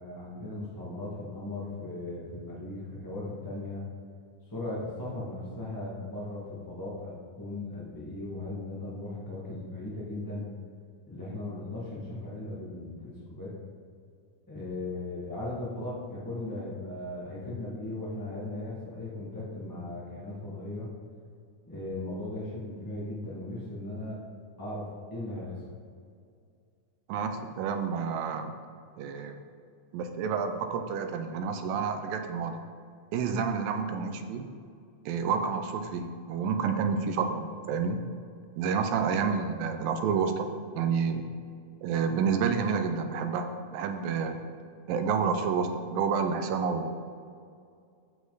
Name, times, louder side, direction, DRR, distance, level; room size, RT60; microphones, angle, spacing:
voice 1, 0.0-3.8 4.5-10.4 11.1-13.5 14.5-20.9 21.7-24.2 24.6-25.6 39.0-39.3, left 2 dB, 20° left, -6 dB, 0.5 m, -37 dB
voice 2, 27.1-28.5 29.0-29.4 29.9-32.6 33.1-34.5 35.1-38.0 38.6-40.5 40.8-41.3 41.8-44.4 44.9-46.9, right 6 dB, 85° right, 7 dB, 2.5 m, -29 dB
14.5 x 5.3 x 4.0 m, 2.3 s
omnidirectional pair, 3.9 m